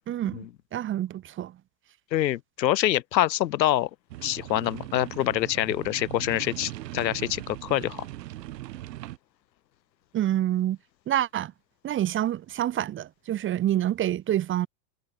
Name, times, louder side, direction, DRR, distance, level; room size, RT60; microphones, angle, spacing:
voice 1, 0.1-0.5 0.7-1.5 10.1-10.8 11.1-11.5 11.8-14.7, right 12 dB, 25° right, 1.4 m, -27 dB
voice 2, 2.1-3.9 4.2-8.1, left 13 dB, 85° left, 5.6 m, -26 dB
sound 1, 4.1-9.2, right 16 dB, 75° right, 4.2 m, -39 dB
supercardioid pair, 145°, 50 cm